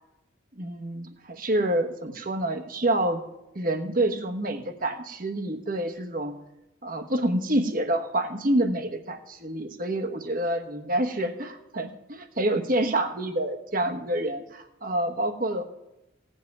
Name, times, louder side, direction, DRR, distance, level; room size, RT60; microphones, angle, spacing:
voice 1, 0.6-3.2 3.5-6.4 6.8-15.6, right 1 dB, 45° right, 7 dB, 1.2 m, -27 dB
16.5 x 5.6 x 9.3 m, 0.92 s
head